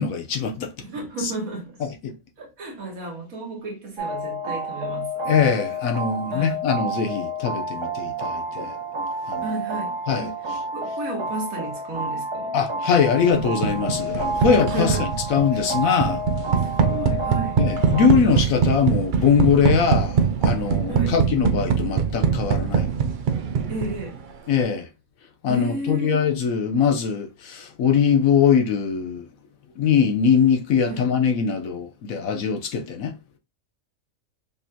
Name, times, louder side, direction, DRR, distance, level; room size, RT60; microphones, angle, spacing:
voice 1, 0.0-0.7 5.3-8.7 9.3-9.4 10.1-10.3 12.5-15.0 15.3-16.2 17.6-22.9 24.5-24.9 25.4-29.3 29.8-33.1, left 6 dB, 75° left, 1.2 m, -22 dB
voice 2, 0.8-1.8 2.4-5.2 6.3-6.6 9.4-10.4 10.7-12.6 14.7-15.1 16.6-17.6 20.9-21.2 23.7-24.2 25.5-26.2 30.9-31.1, right 2 dB, 80° right, 1.8 m, -32 dB
sound 1, 4.0-18.1, right 1 dB, 25° right, 0.7 m, -30 dB
sound 2, 13.4-24.2, right 7 dB, 60° right, 0.5 m, -23 dB
5.3 x 2.8 x 2.2 m
omnidirectional pair, 1.5 m